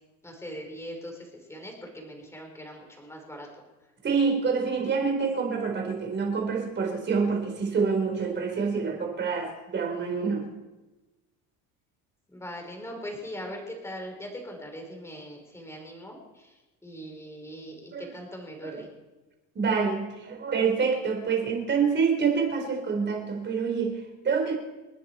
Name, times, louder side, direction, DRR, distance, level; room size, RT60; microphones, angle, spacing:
voice 1, 0.2-3.5 12.3-16.6 16.8-18.9, equal, 10° left, 2 dB, 4.5 m, -41 dB
voice 2, 4.0-10.4 17.9-18.1 18.6-18.8 19.5-24.6, right 5 dB, 30° right, 3 dB, 4.3 m, -27 dB
29.5 x 10.0 x 4.5 m, 1.1 s
cardioid pair, 130°, 34 cm